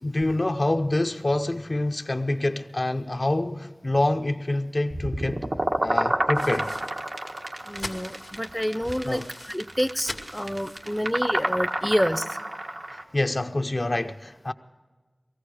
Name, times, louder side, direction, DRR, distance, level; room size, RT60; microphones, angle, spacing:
voice 1, 0.0-5.4 5.8-6.7 9.0-9.3 12.9-14.5, left 1 dB, 60° left, 0.7 m, -26 dB
sound 1, 4.9-13.0, right 1 dB, 90° right, 1.4 m, -29 dB
sound 2, 6.3-11.4, left 2 dB, 85° left, 1.6 m, -43 dB
voice 2, 7.6-12.4, equal, 5° left, 0.6 m, -28 dB
19.5 x 15.0 x 4.9 m
wide cardioid pair, 50°, 0 cm